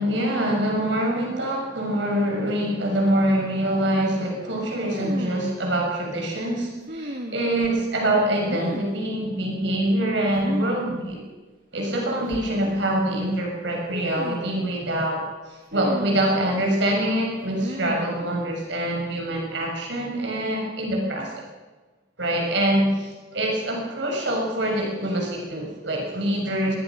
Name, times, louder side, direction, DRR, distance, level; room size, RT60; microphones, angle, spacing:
voice 1, 0.0-11.2 11.7-21.4 22.2-26.8, right 1 dB, 70° right, 0 dB, 6.5 m, -25 dB
sound 1, 4.9-5.6 6.9-7.7 8.4-9.1 10.4-10.8 11.1-11.2 12.1-12.8 13.9-14.7 15.7-16.5 17.5-18.2, right 1 dB, 50° right, 2.5 m, -35 dB
24.0 x 20.5 x 6.2 m, 1.3 s
head